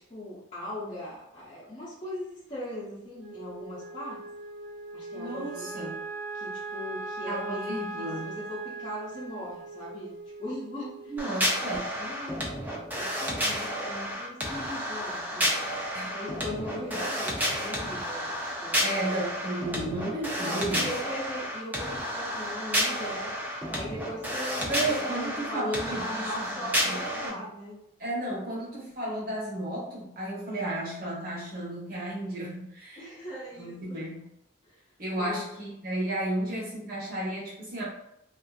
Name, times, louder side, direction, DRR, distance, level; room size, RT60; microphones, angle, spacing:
voice 1, 0.1-4.2 4.9-5.9 6.3-10.1 10.4-11.1 12.0-12.5 13.0-15.5 16.1-18.3 18.6-18.9 20.4-23.3 23.7-27.8 33.0-34.2 34.7-34.8 35.2-35.5, left 1 dB, 30° left, -11 dB, 0.6 m, -39 dB
Wind instrument woodwind instrument, 3.2-11.6, right 3 dB, 90° right, 1.0 m, -40 dB
voice 2, 5.1-6.0 7.2-8.4 11.1-11.9 15.9-16.1 18.8-20.9 24.6-26.5 27.1-27.4 28.0-33.1 33.6-34.3 35.0-37.8, right 1 dB, 45° right, -5 dB, 0.9 m, -33 dB
sound 1, 11.2-27.3, equal, 10° right, 0.3 m, -31 dB
2.5 x 2.4 x 2.4 m, 0.80 s
head